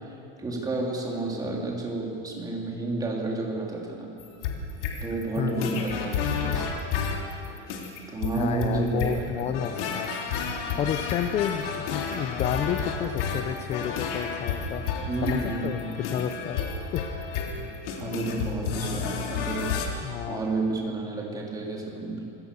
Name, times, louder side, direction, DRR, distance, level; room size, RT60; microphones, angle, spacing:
voice 1, 0.4-4.1 5.0-6.8 8.1-9.4 15.0-15.8 18.0-19.7 20.3-22.2, right 3 dB, 10° right, -2 dB, 3.4 m, -30 dB
sound 1, 4.2-19.9, left 6 dB, 70° left, 3.4 m, -31 dB
voice 2, 5.4-5.9 8.1-10.1 10.4-14.9 15.2-16.6 16.9-17.1 20.0-20.4, left 9 dB, 20° left, 8 dB, 0.6 m, -31 dB
26.5 x 17.5 x 7.1 m, 2.7 s
supercardioid pair, 165°, 29 cm